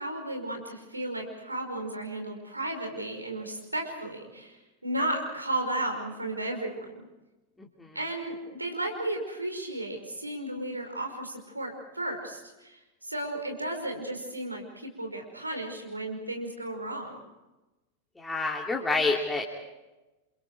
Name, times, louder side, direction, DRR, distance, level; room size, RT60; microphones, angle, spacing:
voice 1, 0.0-7.1 7.9-17.2, right 1 dB, 85° right, 3 dB, 5.3 m, -34 dB
voice 2, 18.2-19.4, left 3 dB, 10° left, -2 dB, 2.8 m, -28 dB
29.5 x 27.0 x 4.8 m, 1.1 s
figure-of-eight pair, 90°, 0 cm